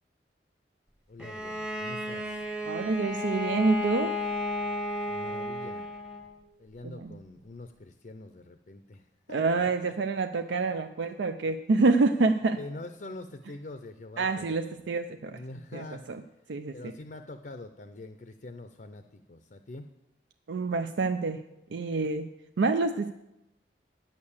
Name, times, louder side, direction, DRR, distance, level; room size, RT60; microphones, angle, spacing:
voice 1, 1.1-2.4 5.1-5.9 6.6-9.9 12.6-14.7 15.3-16.1 16.7-19.9, left 2 dB, 45° left, 8 dB, 0.5 m, -44 dB
Bowed string instrument, 1.2-6.3, left 2 dB, 5° right, 0.8 m, -33 dB
voice 2, 2.6-4.2 6.8-7.2 9.3-12.6 14.2-15.4 15.7-16.2 16.5-16.9 20.5-21.4 21.7-22.3 22.6-23.1, right 3 dB, 80° right, 7 dB, 0.5 m, -27 dB
9.4 x 6.7 x 7.1 m, 0.90 s
head